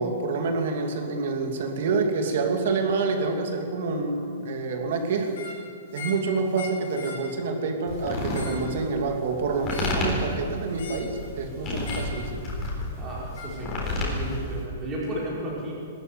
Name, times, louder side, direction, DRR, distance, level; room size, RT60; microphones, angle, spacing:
voice 1, 0.0-5.4 5.9-12.4, right 4 dB, 50° right, 3 dB, 2.7 m, -27 dB
sound 1, 5.3-5.6 5.9-6.3 6.5-7.2 8.1-8.7 9.7-10.1 10.8-11.1 11.8-12.2 13.4-13.5, left 5 dB, 55° left, 4.9 m, -40 dB
sound 2, 7.9-14.6, left 1 dB, 15° left, 4.0 m, -31 dB
voice 2, 13.0-15.7, right 1 dB, 15° right, -6 dB, 5.1 m, -33 dB
20.5 x 13.5 x 9.5 m, 2.4 s
hypercardioid pair, 180°, 0 cm